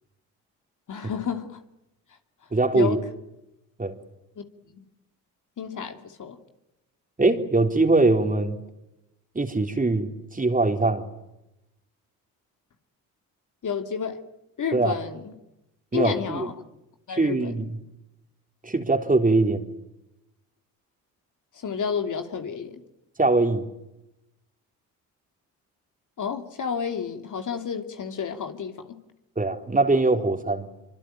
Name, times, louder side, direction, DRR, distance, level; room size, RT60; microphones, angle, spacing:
voice 1, 0.9-1.6 2.7-3.0 4.4-4.8 5.6-6.4 13.6-14.2 14.6-15.3 15.9-16.5 17.1-17.5 21.5-22.8 26.2-29.0, left 6 dB, 50° left, 6 dB, 2.8 m, -31 dB
voice 2, 2.5-3.0 3.8-4.0 7.2-8.6 9.4-11.1 14.7-14.9 15.9-16.5 17.2-17.7 18.6-19.7 23.2-23.7 29.4-30.7, right 2 dB, 20° right, 5 dB, 3.7 m, -22 dB
25.0 x 25.0 x 9.1 m, 0.92 s
supercardioid pair, 65°, 39 cm